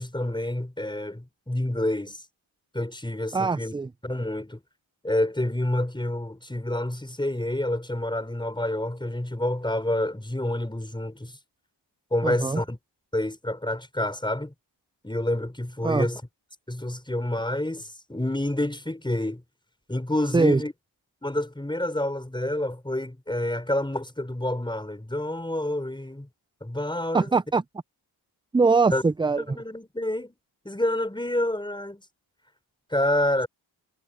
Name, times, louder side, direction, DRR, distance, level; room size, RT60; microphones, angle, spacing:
voice 1, 0.0-2.2 2.7-3.7 4.0-4.6 5.0-11.3 12.1-12.8 13.1-14.5 15.0-16.2 16.7-19.4 19.9-20.7 21.2-26.3 26.6-27.3 28.9-29.0 29.4-30.3 30.6-32.0 32.9-33.5, left 1 dB, 10° left, 4.9 m, -28 dB
voice 2, 3.3-3.9 12.2-12.6 15.8-16.1 20.3-20.6 27.1-27.6 28.5-29.6, right 4 dB, 10° right, 0.3 m, -22 dB
cardioid pair, 75°, 47 cm